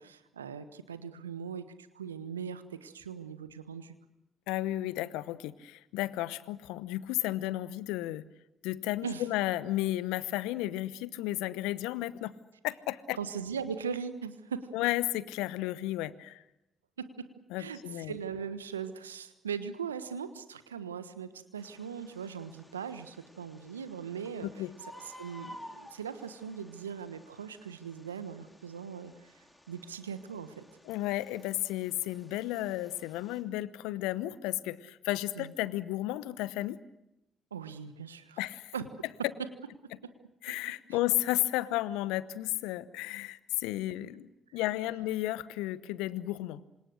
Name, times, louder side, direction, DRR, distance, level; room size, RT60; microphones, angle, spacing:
voice 1, 0.0-3.9 9.0-9.3 13.2-14.7 17.0-17.1 17.6-24.6 24.9-29.3 29.7-30.6 35.4-35.5 37.5-38.5 38.7-39.1, right 7 dB, 85° right, 11 dB, 1.2 m, -40 dB
voice 2, 4.5-8.3 8.6-12.3 12.6-13.2 14.7-16.4 17.5-18.1 24.4-24.7 30.9-36.8 38.4-38.7 40.4-46.6, left 16 dB, 70° left, 17 dB, 0.9 m, -33 dB
Bird, 21.6-33.4, left 1 dB, 5° left, 4.9 m, -54 dB
27.5 x 26.5 x 6.5 m, 0.92 s
figure-of-eight pair, 45°, 0 cm